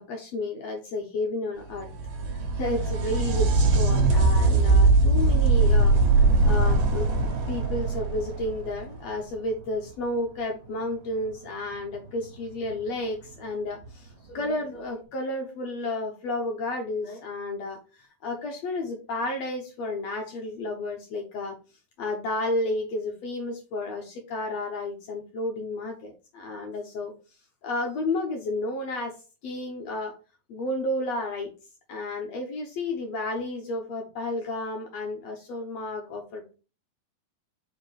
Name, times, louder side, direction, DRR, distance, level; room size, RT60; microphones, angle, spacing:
voice 1, 0.0-1.9 2.6-21.6 22.0-27.1 27.6-29.1 29.4-30.1 30.5-31.5 31.9-36.5, left 2 dB, 75° left, 2 dB, 1.5 m, -32 dB
sound 1, 1.7-9.3 12.7-12.8 13.8-13.9, right 3 dB, 70° right, 2.6 m, -21 dB
5.5 x 4.3 x 4.8 m, 0.34 s
omnidirectional pair, 4.3 m